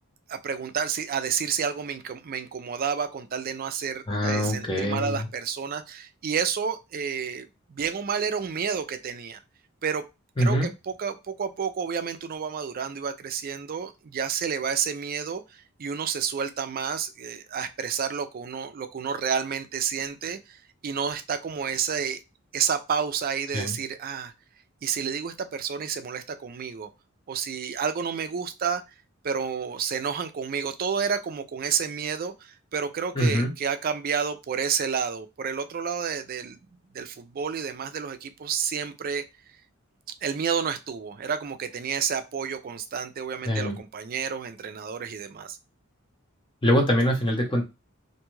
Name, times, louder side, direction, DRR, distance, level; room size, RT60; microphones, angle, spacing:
voice 1, 0.3-9.4 9.8-10.0 10.4-22.2 22.5-24.3 24.8-26.9 27.3-28.8 29.2-36.6 36.9-39.2 40.2-45.6, right 7 dB, 45° right, 9 dB, 0.4 m, -30 dB
voice 2, 4.1-5.2 10.4-10.7 23.5-23.8 33.1-33.5 43.5-43.7 46.6-47.7, equal, 25° left, 2 dB, 0.7 m, -23 dB
2.6 x 2.3 x 3.0 m, 0.25 s
head